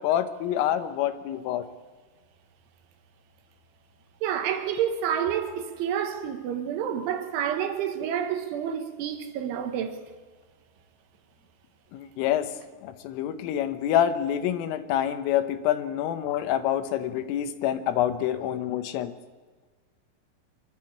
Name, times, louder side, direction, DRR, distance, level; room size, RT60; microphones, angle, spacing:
voice 1, 0.0-1.7 11.9-12.5 12.8-19.1, left 11 dB, 85° left, 3.6 m, -27 dB
voice 2, 4.2-10.0, right 9 dB, 75° right, 3.7 m, -29 dB
24.5 x 12.5 x 8.5 m
omnidirectional pair, 5.7 m